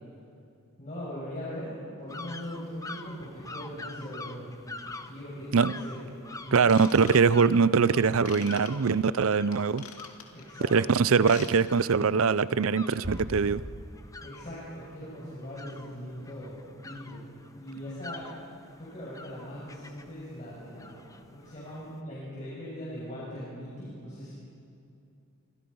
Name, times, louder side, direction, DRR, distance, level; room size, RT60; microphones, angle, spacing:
voice 1, 0.8-6.1 6.4-6.8 10.3-11.3 14.2-17.2 17.6-18.3 18.8-24.3, equal, 35° left, -8 dB, 6.7 m, -40 dB
sound 1, 2.1-22.0, left 2 dB, 15° left, 0.9 m, -47 dB
voice 2, 6.5-9.8 10.7-13.6, right 5 dB, 70° right, 17 dB, 0.5 m, -22 dB
Ratchet pawl / Tools, 6.6-7.6 8.2-8.7 9.5-10.4 11.1-11.5 11.8-12.0 12.5-12.6, left 7 dB, 85° left, 2.4 m, -44 dB
Bass drum, 13.0-14.4, equal, 50° right, 4.6 m, -39 dB
29.0 x 25.5 x 5.5 m, 2.6 s
head